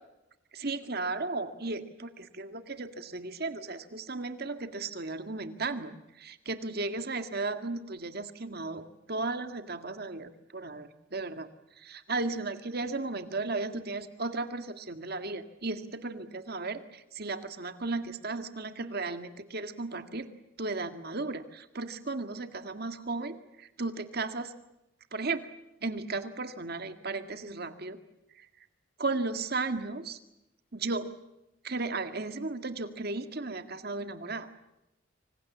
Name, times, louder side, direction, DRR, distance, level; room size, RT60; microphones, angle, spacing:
voice 1, 0.5-11.5 11.8-20.3 20.6-24.5 25.1-25.5 25.8-28.0 28.4-28.5 29.0-30.2 30.7-31.1 31.6-34.5, right 3 dB, 50° right, 8 dB, 1.9 m, -35 dB
26.5 x 26.0 x 7.3 m, 0.93 s
head